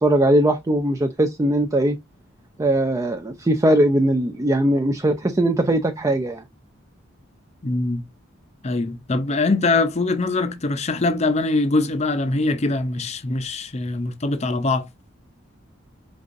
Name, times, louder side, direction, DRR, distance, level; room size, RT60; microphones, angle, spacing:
voice 1, 0.0-2.0 2.6-6.4, right 1 dB, 15° right, 0.4 m, -20 dB
voice 2, 7.6-8.0 8.6-14.9, left 3 dB, 35° left, 0.6 m, -22 dB
5.2 x 3.6 x 2.5 m
head